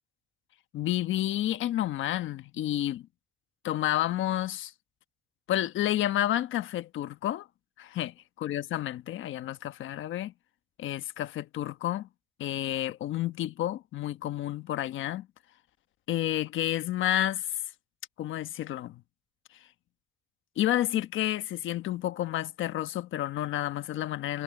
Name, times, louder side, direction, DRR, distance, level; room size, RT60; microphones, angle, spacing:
voice 1, 0.7-3.1 3.6-4.7 5.5-7.5 7.8-10.3 10.8-12.1 12.4-15.3 16.1-17.5 18.2-19.0 20.6-24.4, left 13 dB, 80° left, 1.2 m, -30 dB
cardioid pair, 90°, 20 cm